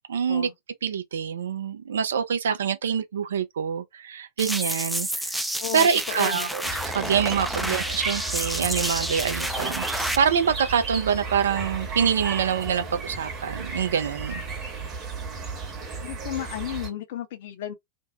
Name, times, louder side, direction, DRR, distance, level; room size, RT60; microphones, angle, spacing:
voice 1, 0.1-0.5 0.8-5.4 5.7-6.7 6.9-14.4, right 7 dB, 65° right, 0.4 m, -25 dB
sound 1, 4.4-10.2, equal, ahead, 0.3 m, -30 dB
voice 2, 5.6-6.5 7.5-7.8 16.0-17.7, left 10 dB, 55° left, 0.6 m, -34 dB
sound 2, 6.6-16.9, right 4 dB, 30° right, 1.0 m, -34 dB
2.6 x 2.1 x 2.3 m
figure-of-eight pair, 90°, 0 cm